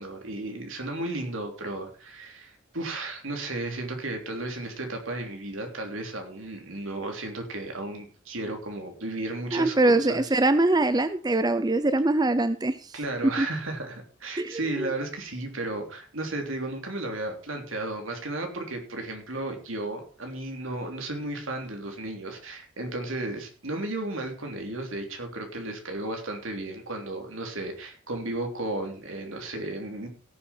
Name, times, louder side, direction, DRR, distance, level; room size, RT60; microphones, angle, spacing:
voice 1, 0.0-10.2 12.9-30.1, right 2 dB, 80° right, 3 dB, 3.3 m, -34 dB
voice 2, 9.5-12.9 13.2-13.5 14.4-14.9, right 2 dB, 20° right, 12 dB, 0.6 m, -23 dB
17.0 x 7.5 x 4.5 m, 0.37 s
head